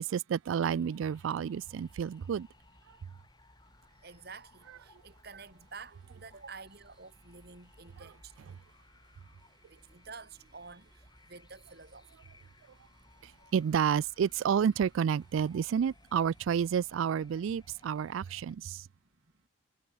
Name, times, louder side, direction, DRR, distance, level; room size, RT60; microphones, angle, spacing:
voice 1, 0.0-2.5 13.2-18.8, right 7 dB, 80° right, 0.3 m, -30 dB
sound 1, 0.7-18.6, left 4 dB, 20° left, 1.6 m, -65 dB
sound 2, 1.5-18.7, equal, 5° right, 2.4 m, -64 dB
voice 2, 3.7-8.6 9.2-9.3 9.6-12.1 13.1-13.2 18.8-19.5, right 4 dB, 50° right, 2.8 m, -51 dB
sound 3, 5.5-16.6, right 5 dB, 20° right, 7.3 m, -78 dB
head